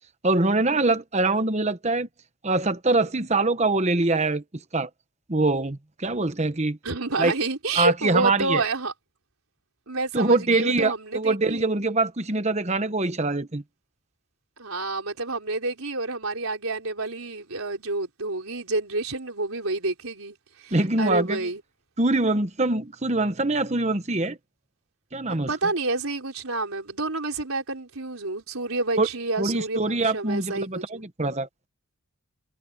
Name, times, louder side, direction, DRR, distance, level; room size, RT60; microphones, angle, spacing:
voice 1, 0.2-2.1 2.4-4.4 4.7-4.9 5.3-6.8 7.2-7.3 7.7-8.6 10.1-13.6 20.7-21.5 22.0-24.4 25.1-25.5 29.0-29.1 29.4-31.5, right 2 dB, 30° right, 1.1 m, -24 dB
voice 2, 6.8-8.9 9.9-11.6 14.6-21.6 25.5-29.8 30.0-31.0, right 3 dB, 80° right, 3.9 m, -29 dB
head